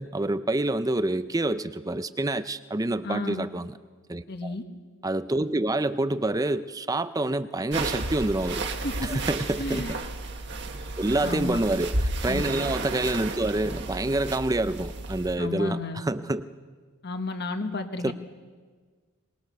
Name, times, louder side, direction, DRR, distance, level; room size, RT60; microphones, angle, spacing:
voice 1, 0.0-3.7 4.1-4.5 5.0-8.6 9.0-9.9 11.0-16.5 18.0-18.1, right 2 dB, 15° right, 13 dB, 0.5 m, -27 dB
voice 2, 3.0-3.5 4.3-4.6 8.8-9.2 9.6-9.9 11.2-11.6 12.3-12.4 15.4-16.0 17.0-18.1, left 2 dB, 50° left, 6 dB, 1.5 m, -32 dB
sound 1, 7.7-15.4, right 2 dB, 50° right, 1.6 m, -32 dB
23.5 x 20.5 x 6.7 m, 1.5 s
head